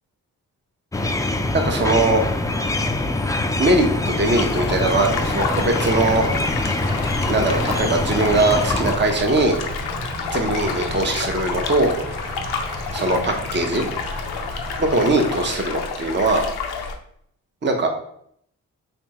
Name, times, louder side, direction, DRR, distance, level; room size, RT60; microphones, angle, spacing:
sound 1, 0.9-9.0, left 2 dB, 10° left, 0.4 m, -24 dB
voice 1, 1.5-2.2 3.6-6.2 7.3-9.6 10.3-11.9 12.9-13.9 14.8-16.4 17.6-17.9, right 2 dB, 30° right, 3 dB, 0.8 m, -20 dB
sound 2, 4.3-17.0, left 5 dB, 85° left, 0.6 m, -29 dB
sound 3, 4.6-15.5, right 1 dB, 75° right, 1.4 m, -35 dB
3.4 x 3.1 x 2.9 m, 0.68 s
supercardioid pair, 45°, 37 cm